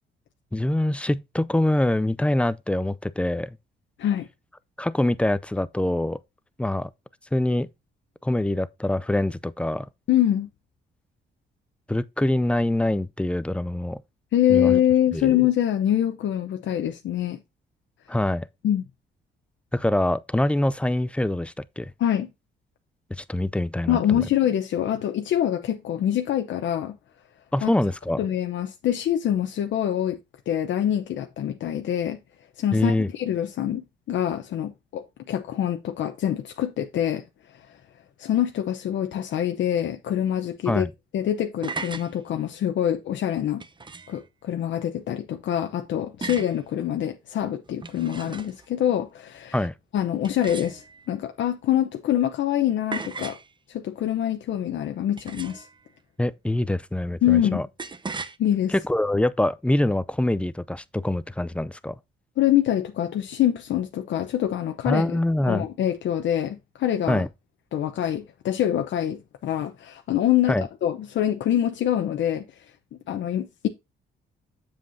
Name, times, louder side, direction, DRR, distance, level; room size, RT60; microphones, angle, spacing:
voice 1, 0.5-3.6 4.8-6.2 6.6-6.9 7.3-7.7 8.2-9.9 11.9-14.0 14.5-14.7 15.1-15.3 18.1-18.5 19.7-21.9 23.2-24.3 27.5-28.2 32.7-33.1 40.7-40.9 49.5-49.7 56.2-57.7 58.7-62.0 64.9-65.7 67.1-67.3 70.5-70.6, left 1 dB, 5° left, 0.4 m, -24 dB
voice 2, 10.1-10.5 14.3-17.4 18.6-18.8 22.0-22.3 23.9-27.0 27.6-27.7 28.2-30.2 30.5-32.2 32.6-37.2 38.2-40.9 41.1-43.6 44.1-49.6 49.9-53.4 53.7-55.6 57.2-57.6 58.4-58.7 62.4-67.2 67.7-72.4 73.1-73.7, left 11 dB, 70° left, 0.8 m, -25 dB
sound 1, 41.6-42.1 43.6-44.2 46.2-46.6 47.7-48.7 50.2-51.1 52.9-53.5 55.2-55.7 57.8-58.4, right 4 dB, 25° right, 0.8 m, -36 dB
7.7 x 7.4 x 2.7 m
cardioid pair, 90°, 20 cm